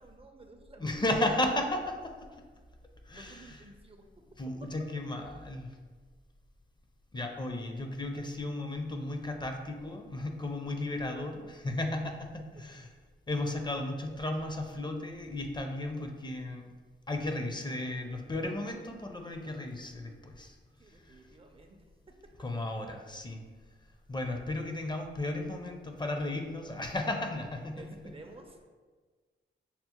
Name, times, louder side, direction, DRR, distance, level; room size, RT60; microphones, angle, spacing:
voice 1, 0.0-1.0 3.1-4.1 20.8-22.2 27.8-28.7, right 2 dB, 30° right, 3 dB, 0.4 m, -53 dB
voice 2, 0.8-2.1 3.1-3.6 4.4-5.7 7.1-12.9 13.3-16.7 17.1-20.5 22.4-23.4 24.1-27.9, left 1 dB, 20° left, 4 dB, 0.5 m, -34 dB
5.5 x 2.0 x 2.8 m, 1.4 s
cardioid pair, 60°, 20 cm